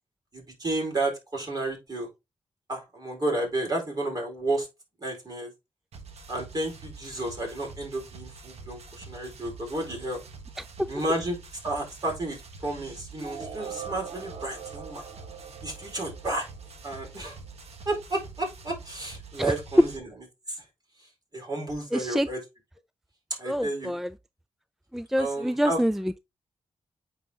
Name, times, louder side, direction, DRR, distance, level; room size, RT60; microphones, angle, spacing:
voice 1, 0.3-2.1 2.7-4.7 5.0-5.5 6.3-10.2 10.9-11.4 11.6-15.0 15.6-16.5 16.8-17.4 17.9-20.1 20.5-20.6 21.3-22.4 23.4-24.0 25.2-25.8, right 2 dB, 40° right, 4.2 m, -31 dB
sound 1, 5.9-20.0, right 4 dB, 90° right, 1.4 m, -46 dB
voice 2, 10.6-10.9 19.4-19.5 21.9-22.3 23.4-24.1 24.9-26.2, equal, 5° right, 0.3 m, -27 dB
sound 2, 13.2-17.1, right 6 dB, 65° right, 1.3 m, -42 dB
8.9 x 4.5 x 2.8 m
cardioid pair, 85°, 10 cm